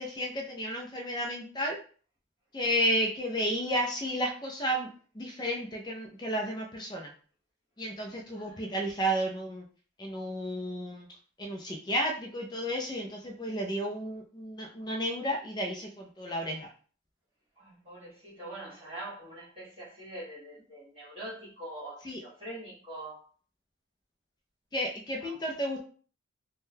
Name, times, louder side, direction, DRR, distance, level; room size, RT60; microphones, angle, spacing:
voice 1, 0.0-1.8 2.5-4.9 5.2-7.1 7.8-9.6 10.0-11.1 11.4-16.7 22.0-22.2 24.7-25.8, equal, 20° left, 1 dB, 0.4 m, -32 dB
voice 2, 17.6-23.2 25.2-25.5, right 1 dB, 25° right, -10 dB, 1.3 m, -44 dB
3.5 x 2.2 x 2.7 m, 0.42 s
head